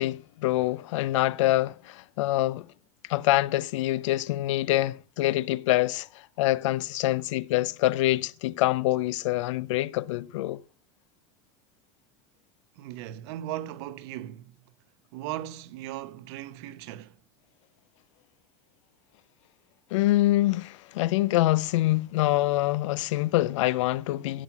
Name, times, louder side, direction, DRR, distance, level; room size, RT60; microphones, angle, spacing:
voice 1, 0.0-2.7 3.1-6.1 6.4-10.6 19.9-24.4, left 16 dB, 90° left, 0.6 m, -25 dB
voice 2, 12.8-14.5 15.1-17.2, right 13 dB, 60° right, 1.0 m, -37 dB
16.5 x 5.6 x 6.0 m
supercardioid pair, 160°, 15 cm